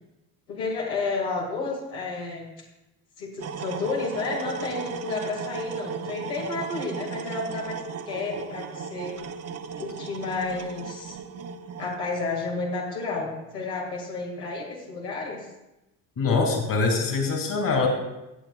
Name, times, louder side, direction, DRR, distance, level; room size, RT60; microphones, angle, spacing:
voice 1, 0.5-2.5 3.2-7.8 8.0-9.1 9.8-11.2 11.8-15.4, left 3 dB, 85° left, -3 dB, 2.2 m, -31 dB
sound 1, 3.4-12.0, right 6 dB, 35° right, 0.7 m, -36 dB
voice 2, 16.2-17.9, left 4 dB, 45° left, 2 dB, 2.7 m, -23 dB
17.5 x 7.9 x 2.4 m, 0.97 s
hypercardioid pair, 75°, 46 cm